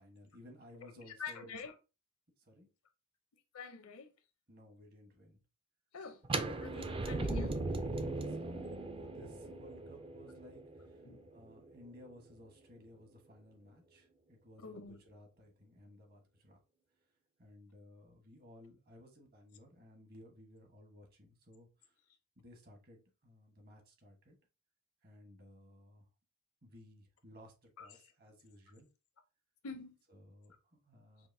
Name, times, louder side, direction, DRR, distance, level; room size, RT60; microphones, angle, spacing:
voice 1, 0.0-1.5 2.4-2.7 4.5-5.4 6.7-7.0 7.4-7.5 7.9-11.0 11.3-16.6 17.4-22.0 22.4-24.4 25.0-26.0 26.6-28.9 30.1-31.3, left 1 dB, 45° right, 1.2 m, -58 dB
voice 2, 0.8-1.7 3.5-4.1 5.9-6.2 6.6-7.6 11.0-11.2 14.6-15.0 27.8-28.1 29.6-30.0 31.2-31.3, left 4 dB, 85° left, 0.7 m, -46 dB
sound 1, 6.2-12.1, right 2 dB, 25° right, 0.4 m, -39 dB
5.7 x 2.5 x 2.6 m
head